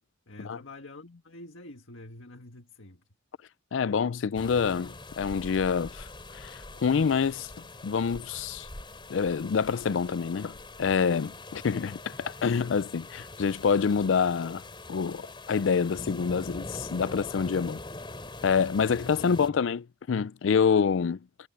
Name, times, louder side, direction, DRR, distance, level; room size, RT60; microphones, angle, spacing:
voice 1, 0.3-3.0 19.1-19.4, left 2 dB, 90° left, 1.7 m, -46 dB
voice 2, 3.7-6.1 6.3-7.5 7.8-8.7 9.1-14.6 14.9-17.8 18.4-21.5, left 6 dB, 75° left, 0.4 m, -27 dB
sound 1, 4.3-19.5, left 2 dB, 25° left, 3.5 m, -43 dB
head